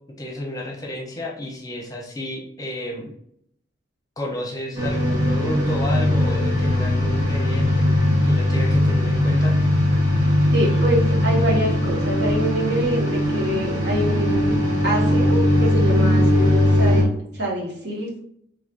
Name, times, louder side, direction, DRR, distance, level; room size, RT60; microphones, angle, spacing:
voice 1, 0.2-3.1 4.2-7.9 8.2-9.5, left 1 dB, 20° left, -1 dB, 0.8 m, -31 dB
sound 1, 4.7-17.0, left 1 dB, 85° right, 1.7 m, -19 dB
sound 2, 5.9-11.9, left 5 dB, 65° left, 0.3 m, -32 dB
voice 2, 10.5-18.2, equal, 65° right, -3 dB, 1.4 m, -26 dB
5.0 x 3.3 x 2.5 m, 0.72 s
head